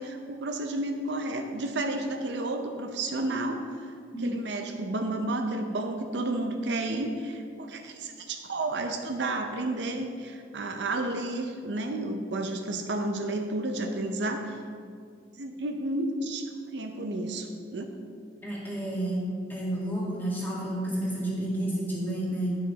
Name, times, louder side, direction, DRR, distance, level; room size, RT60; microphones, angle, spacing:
voice 1, 0.0-3.9 4.2-14.6 15.4-18.0, right 2 dB, 65° right, 5 dB, 0.6 m, -31 dB
voice 2, 18.4-19.2 19.5-22.6, right 1 dB, 10° left, -5 dB, 1.9 m, -30 dB
9.9 x 5.9 x 4.0 m, 2.2 s
head